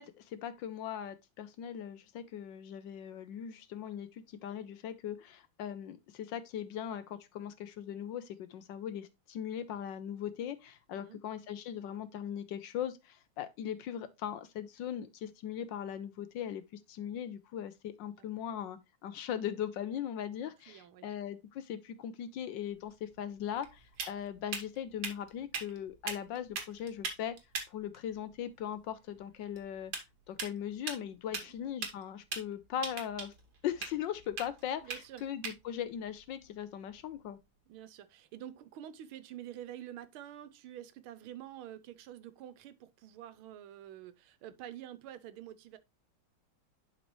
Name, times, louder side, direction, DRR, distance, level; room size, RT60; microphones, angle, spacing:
voice 1, 0.0-27.4 27.7-29.9 30.3-33.3 33.6-37.4, left 9 dB, 70° left, 1.2 m, -39 dB
voice 2, 20.7-21.1 31.3-31.5 34.8-35.3 37.7-45.8, right 11 dB, 90° right, 1.6 m, -48 dB
sound 1, 22.7-37.4, right 5 dB, 55° right, 2.0 m, -44 dB
11.0 x 4.2 x 3.1 m
omnidirectional pair, 2.3 m